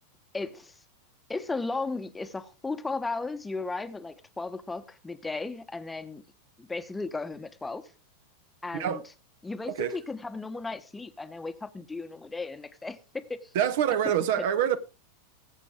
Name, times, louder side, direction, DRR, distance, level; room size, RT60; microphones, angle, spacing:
voice 1, 0.3-0.8 1.3-6.2 6.6-7.8 8.6-9.0 9.4-13.5 14.0-14.1, left 3 dB, 10° left, 1.1 m, -35 dB
voice 2, 13.5-14.8, right 9 dB, 55° right, 1.0 m, -26 dB
20.5 x 8.2 x 3.6 m
figure-of-eight pair, 90°, 0 cm